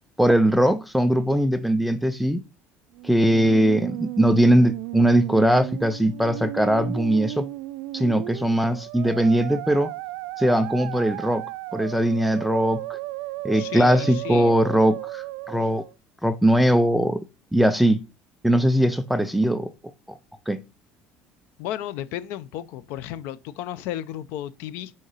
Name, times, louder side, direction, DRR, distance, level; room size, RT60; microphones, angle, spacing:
voice 1, 0.2-2.4 3.0-7.5 7.9-9.9 10.4-13.0 13.4-15.8 16.2-17.2 17.5-18.0 18.4-19.7 20.1-20.2 20.5-20.6, equal, ahead, 0.4 m, -20 dB
Musical instrument, 2.9-15.9, right 19 dB, 90° right, 0.3 m, -34 dB
voice 2, 13.5-14.5 21.6-24.9, left 12 dB, 65° left, 0.6 m, -34 dB
6.4 x 5.1 x 5.5 m
cardioid pair, 175°, 4 cm